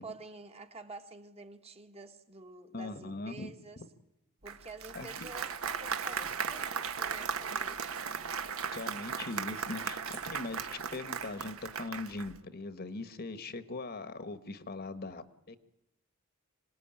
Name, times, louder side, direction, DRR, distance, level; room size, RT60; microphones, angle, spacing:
voice 1, 0.0-3.8 4.4-8.0, right 3 dB, 30° right, 1.5 m, -49 dB
voice 2, 2.7-3.5 4.9-5.1 8.7-15.6, left 3 dB, 45° left, 1.3 m, -40 dB
Applause, 4.5-12.4, right 6 dB, 65° right, 1.4 m, -37 dB
26.0 x 19.0 x 8.9 m
head